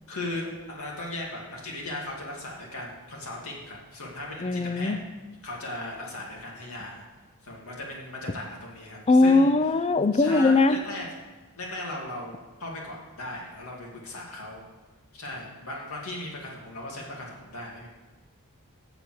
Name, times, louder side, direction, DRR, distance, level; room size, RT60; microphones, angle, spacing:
voice 1, 0.1-4.9 5.4-7.0 7.4-9.5 10.1-11.0 11.6-12.3 12.6-14.6 15.1-17.9, left 1 dB, 75° left, -2 dB, 2.4 m, -37 dB
voice 2, 4.4-5.0 9.1-10.8, left 3 dB, 30° left, 12 dB, 0.4 m, -20 dB
7.1 x 7.0 x 7.7 m, 1.2 s
head